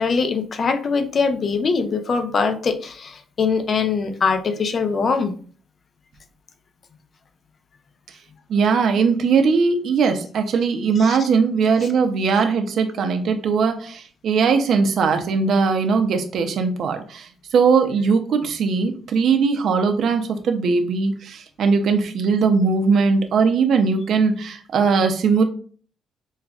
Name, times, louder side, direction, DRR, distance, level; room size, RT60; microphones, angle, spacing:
voice 1, 0.0-5.3 11.0-11.2 11.8-11.9, left 5 dB, 45° left, 7 dB, 0.5 m, -22 dB
voice 2, 8.5-25.4, right 5 dB, 65° right, 6 dB, 0.6 m, -20 dB
5.3 x 2.3 x 2.4 m, 0.43 s
cardioid pair, 90°, 0 cm